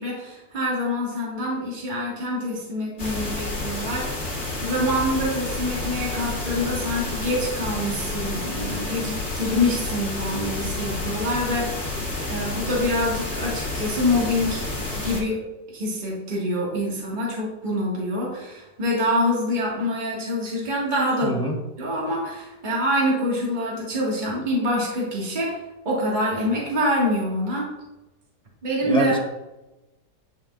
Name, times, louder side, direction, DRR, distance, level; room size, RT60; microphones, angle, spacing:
voice 1, 0.0-4.3 4.6-11.7 12.3-14.6 14.9-15.4 15.7-21.5 21.8-25.6 25.9-27.7 28.6-29.2, left 1 dB, 25° right, -5 dB, 1.9 m, -25 dB
velvet pink noise, 3.0-15.2, left 2 dB, 40° left, 2.4 m, -30 dB
voice 2, 21.2-21.5 28.9-29.2, right 1 dB, 5° left, -1 dB, 0.6 m, -24 dB
9.8 x 5.2 x 2.5 m, 1.0 s
omnidirectional pair, 1.8 m